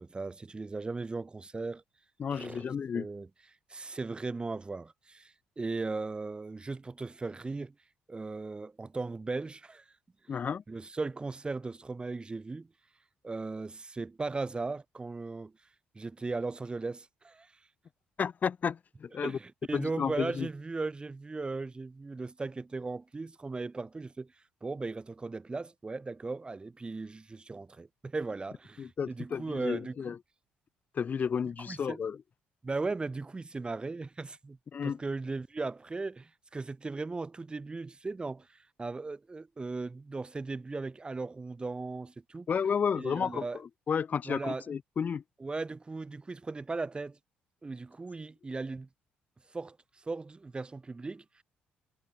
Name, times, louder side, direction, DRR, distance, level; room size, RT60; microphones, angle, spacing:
voice 1, 0.0-1.8 2.3-2.6 2.9-3.3 3.7-7.7 8.1-9.8 10.7-12.7 13.2-15.5 15.9-17.5 19.2-24.3 24.6-30.1 31.7-32.0 32.6-34.6 34.8-42.5 43.0-43.6 44.3-44.6 45.4-47.2 47.6-48.9 49.5-49.8 50.1-51.4, right 3 dB, 25° right, 2.0 m, -37 dB
voice 2, 2.2-3.1 10.3-10.6 18.2-19.4 19.7-20.5 28.8-30.2 30.9-32.2 34.7-35.0 42.5-45.2, left 6 dB, 45° left, 0.7 m, -32 dB
supercardioid pair, 75°, 4 cm